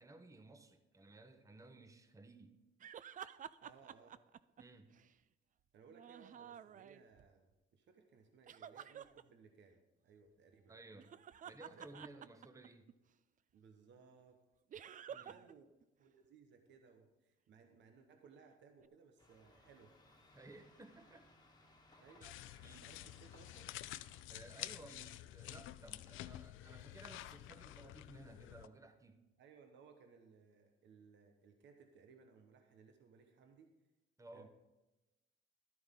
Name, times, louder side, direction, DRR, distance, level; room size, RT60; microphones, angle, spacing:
voice 1, 0.0-2.6 4.6-4.9 10.7-11.1 11.5-12.9 15.1-15.4 20.3-21.3 21.9-22.3 22.6-22.9 24.3-29.3 34.2-34.5, right 2 dB, 15° right, 8 dB, 0.9 m, -57 dB
sound 1, 2.8-5.1 5.9-7.3 8.5-9.2 10.9-12.9 14.7-15.5 15.8-15.9 18.8-18.9, right 9 dB, 40° right, 0.4 m, -51 dB
voice 2, 3.6-4.2 5.7-10.7 11.7-11.9 13.5-14.4 15.2-15.7 16.0-20.0 22.0-22.3 22.6-23.8 29.4-33.7 34.3-34.5, right 5 dB, 65° right, 5 dB, 1.0 m, -63 dB
sound 2, 19.2-24.2, left 2 dB, 20° left, 1.5 m, -66 dB
sound 3, 22.2-28.7, left 15 dB, 90° left, 0.4 m, -50 dB
12.0 x 9.3 x 3.7 m, 1.0 s
cardioid pair, 90°, 20 cm